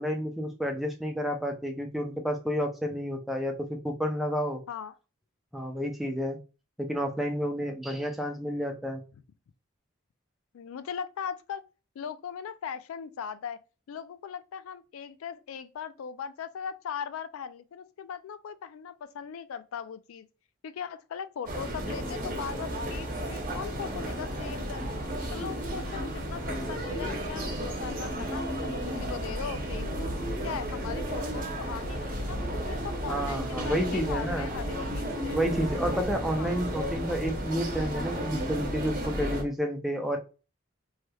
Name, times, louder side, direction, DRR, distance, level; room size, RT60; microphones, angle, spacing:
voice 1, 0.0-4.6 5.5-6.4 6.8-9.0 33.1-34.5 35.3-40.2, equal, ahead, 0.4 m, -30 dB
voice 2, 10.5-11.6 12.0-13.6 13.9-20.3 20.6-24.8 25.3-30.1 30.4-35.4 36.4-36.5, left 7 dB, 85° left, 0.3 m, -39 dB
sound 1, 21.4-39.4, right 1 dB, 40° right, 0.8 m, -33 dB
3.1 x 3.1 x 2.2 m
head